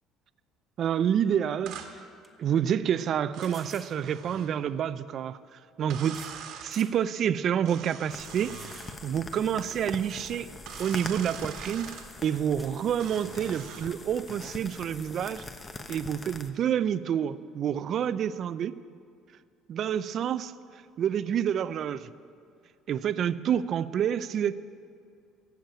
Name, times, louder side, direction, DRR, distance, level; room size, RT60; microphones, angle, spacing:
voice 1, 0.8-1.8 2.4-6.2 6.6-8.7 9.0-10.5 10.8-11.9 12.2-15.4 15.9-18.8 19.7-20.5 21.0-22.1 22.9-24.6, right 9 dB, 55° right, 15 dB, 0.5 m, -28 dB
sound 1, 1.6-1.7 2.2-2.3 3.4-4.0 5.1-5.2 6.1-6.4 6.7-7.0 7.5-7.6 8.5-9.0 9.3-9.4 10.3-10.4 10.7-11.3 12.6-12.8, equal, 5° left, 1.5 m, -49 dB
sound 2, 1.7-1.9 3.3-4.5 5.9-6.8 7.6-9.0 10.7-12.1 13.0-13.9, right 8 dB, 70° right, 1.5 m, -43 dB
sound 3, 8.1-16.5, left 3 dB, 30° left, 1.0 m, -43 dB
15.0 x 7.3 x 8.7 m, 2.3 s
supercardioid pair, 90°, 0 cm